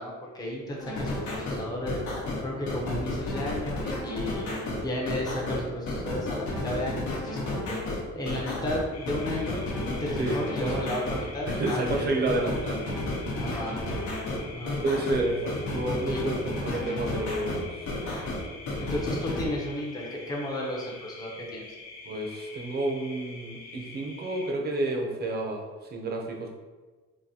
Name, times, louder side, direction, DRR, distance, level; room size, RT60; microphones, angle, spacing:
voice 1, 0.0-2.0 2.4-4.5 4.8-12.5 13.3-13.8 14.4-14.8 16.0-16.2 18.8-21.7, left 1 dB, 15° left, -3 dB, 0.6 m, -33 dB
sound 1, 0.8-19.5, left 1 dB, 70° left, 1.0 m, -32 dB
sound 2, 8.9-24.5, left 3 dB, 55° left, 0.7 m, -46 dB
voice 2, 11.5-13.0 14.8-18.2 22.1-26.5, right 2 dB, 35° right, 1 dB, 0.5 m, -30 dB
4.0 x 2.6 x 2.8 m, 1.3 s
cardioid pair, 155°, 30 cm